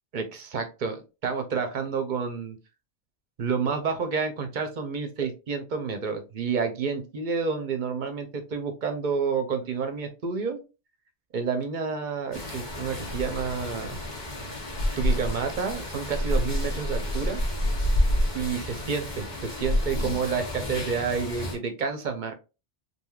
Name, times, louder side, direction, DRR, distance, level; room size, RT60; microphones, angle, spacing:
voice 1, 0.1-2.6 3.4-10.6 11.3-14.0 14.9-17.4 18.3-22.3, right 5 dB, 55° right, 6 dB, 0.7 m, -29 dB
sound 1, 12.3-21.6, left 1 dB, 45° left, 0.9 m, -29 dB
3.3 x 2.7 x 2.3 m, 0.29 s
omnidirectional pair, 1.1 m